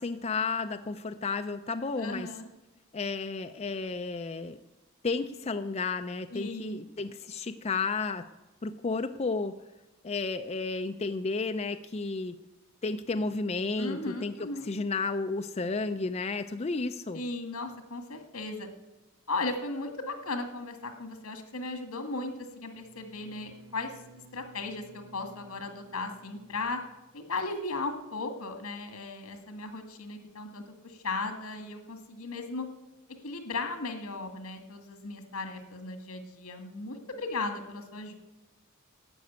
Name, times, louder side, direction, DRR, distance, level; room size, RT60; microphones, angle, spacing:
voice 1, 0.0-2.3 2.9-4.6 5.0-8.3 8.6-9.6 10.0-12.4 12.8-14.3 14.6-17.2, left 4 dB, 30° left, 8 dB, 0.4 m, -32 dB
voice 2, 2.0-2.5 6.3-6.8 13.8-14.7 17.1-18.7 19.3-23.9 24.3-26.8 27.1-32.7 33.2-38.1, left 3 dB, 85° left, 6 dB, 1.9 m, -36 dB
Bowed string instrument, 22.7-27.4, right 3 dB, 65° right, 1.4 m, -56 dB
11.5 x 7.8 x 9.3 m, 1.0 s
head